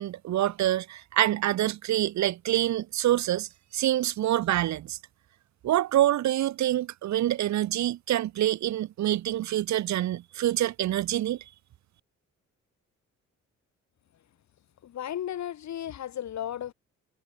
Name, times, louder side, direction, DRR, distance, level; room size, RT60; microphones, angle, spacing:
voice 1, 0.0-5.0 5.6-11.4, right 13 dB, 70° right, 0.9 m, -26 dB
voice 2, 14.8-16.7, left 11 dB, 65° left, 2.8 m, -34 dB
cardioid pair, 90°, 30 cm